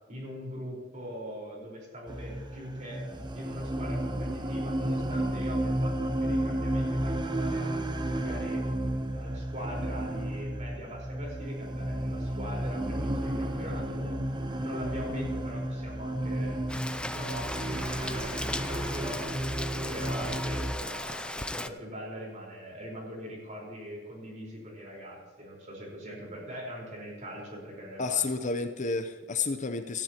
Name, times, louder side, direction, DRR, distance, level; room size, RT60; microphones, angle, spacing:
voice 1, 0.1-3.1 3.3-7.8 8.1-8.6 9.1-14.2 14.6-16.6 16.9-19.3 19.9-28.2, equal, 40° right, -2 dB, 4.4 m, -41 dB
sound 1, 2.1-20.7, right 1 dB, 25° right, 0.8 m, -32 dB
Rain, 16.7-21.7, left 1 dB, 5° left, 0.4 m, -37 dB
voice 2, 28.0-30.0, left 4 dB, 40° left, 8 dB, 0.7 m, -30 dB
16.0 x 14.0 x 2.9 m, 1.4 s
head